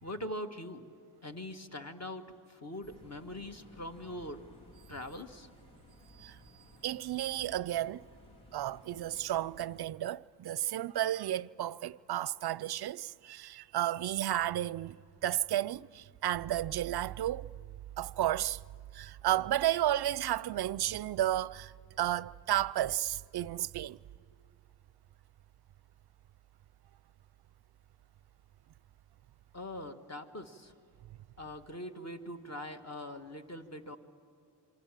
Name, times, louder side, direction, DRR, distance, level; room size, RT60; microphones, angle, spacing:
voice 1, 0.0-0.9 1.2-4.4 4.9-5.5 29.5-30.7 31.4-34.0, left 1 dB, 30° left, 1.7 m, -42 dB
sound 1, 2.8-9.8, equal, 80° left, 3.2 m, -57 dB
voice 2, 6.8-8.0 8.5-17.5 18.0-18.6 18.9-24.0, right 13 dB, 55° right, 0.5 m, -32 dB
27.5 x 23.5 x 7.5 m
cardioid pair, 70°, 48 cm